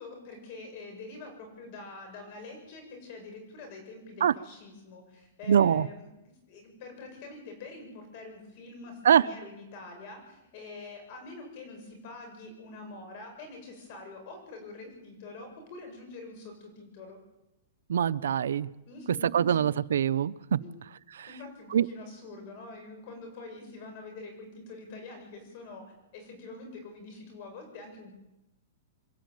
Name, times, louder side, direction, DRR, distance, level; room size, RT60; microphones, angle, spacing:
voice 1, 0.0-6.1 6.5-17.2 18.9-19.6 20.6-20.7 21.3-25.8 26.1-28.1, left 3 dB, 45° left, 4 dB, 7.4 m, -45 dB
voice 2, 5.5-5.9 9.0-9.2 17.9-18.7 19.3-20.6 21.1-21.3 21.7-21.9, right 8 dB, 85° right, 15 dB, 0.7 m, -23 dB
27.0 x 11.5 x 9.3 m, 0.94 s
hypercardioid pair, 160°, 0 cm